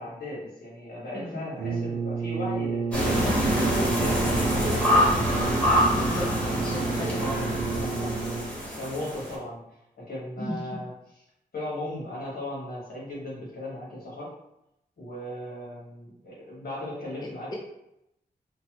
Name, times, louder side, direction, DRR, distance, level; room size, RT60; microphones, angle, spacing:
voice 1, 0.0-5.8 6.4-9.6 10.0-11.2 11.5-14.3 15.0-17.6, left 1 dB, 75° left, -6 dB, 1.4 m, -37 dB
voice 2, 1.1-1.5 5.9-7.2 10.4-10.6, left 1 dB, 25° left, -4 dB, 0.4 m, -35 dB
Brass instrument, 1.6-8.7, right 5 dB, 85° right, 0.4 m, -31 dB
sound 1, 2.9-9.3, equal, 5° left, 0.8 m, -25 dB
3.1 x 2.1 x 2.9 m, 0.84 s
wide cardioid pair, 140°, 16 cm